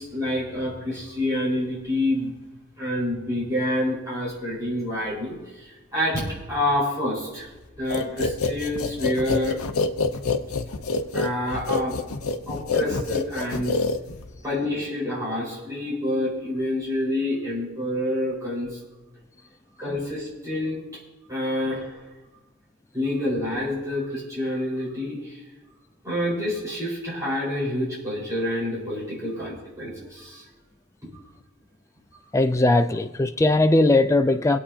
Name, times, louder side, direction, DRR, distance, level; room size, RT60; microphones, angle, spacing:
voice 1, 0.0-2.3 2.8-7.5 7.8-9.6 11.1-12.0 12.5-13.8 14.4-18.8 19.8-20.8 21.3-22.0 22.9-25.4 26.0-30.4, left 1 dB, 15° right, 4.7 m, -27 dB
sound 1, 7.9-14.4, left 4 dB, 90° left, 0.8 m, -26 dB
voice 2, 32.3-34.6, left 2 dB, 15° left, 0.3 m, -19 dB
24.0 x 8.7 x 2.8 m
head